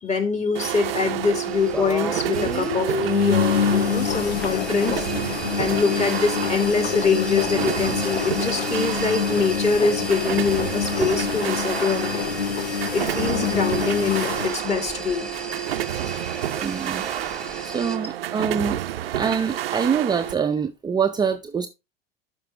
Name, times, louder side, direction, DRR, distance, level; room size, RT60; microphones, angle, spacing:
voice 1, 0.0-5.1 5.6-12.4 12.9-15.3, left 5 dB, 20° left, 2.1 m, -24 dB
sound 1, 0.5-20.3, right 13 dB, 70° right, 0.6 m, -30 dB
sound 2, 1.1-1.3 1.6-1.7 1.9-2.0 2.3-2.5 2.9-14.5, left 6 dB, 80° left, 0.8 m, -26 dB
sound 3, 1.3-18.0, equal, 5° left, 1.4 m, -35 dB
voice 2, 16.6-17.1 17.6-18.8 19.1-21.7, right 6 dB, 15° right, 0.6 m, -25 dB
12.5 x 5.4 x 3.3 m
figure-of-eight pair, 75°, 30 cm